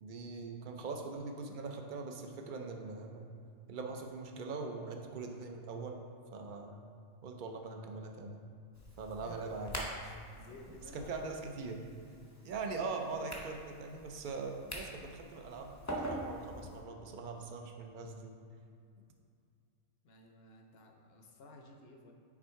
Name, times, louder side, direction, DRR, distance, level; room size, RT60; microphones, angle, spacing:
voice 1, 0.0-3.3 3.7-6.0 6.3-6.8 7.2-8.4 9.0-10.2 10.9-11.8 12.4-18.3, right 4 dB, 60° right, 3 dB, 0.5 m, -42 dB
sound 1, 8.7-16.8, equal, 20° left, 0.5 m, -45 dB
voice 2, 9.2-9.7 10.3-11.1 20.0-22.1, left 2 dB, 60° left, 2 dB, 0.7 m, -54 dB
6.0 x 3.6 x 4.4 m, 2.3 s
omnidirectional pair, 1.3 m